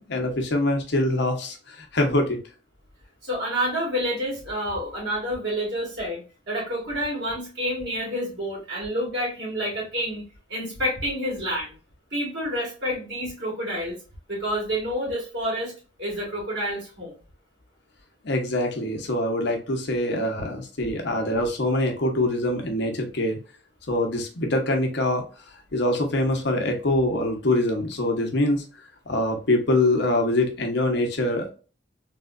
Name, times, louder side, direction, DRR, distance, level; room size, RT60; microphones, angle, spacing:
voice 1, 0.0-2.4 18.2-23.4 23.9-25.2 25.7-28.6 29.1-31.5, left 1 dB, 60° left, 2 dB, 0.9 m, -24 dB
voice 2, 3.2-10.2 10.5-11.7 12.1-14.0 14.3-15.7 16.0-17.1, equal, 60° right, -4 dB, 1.9 m, -28 dB
3.5 x 3.1 x 2.4 m, 0.35 s
head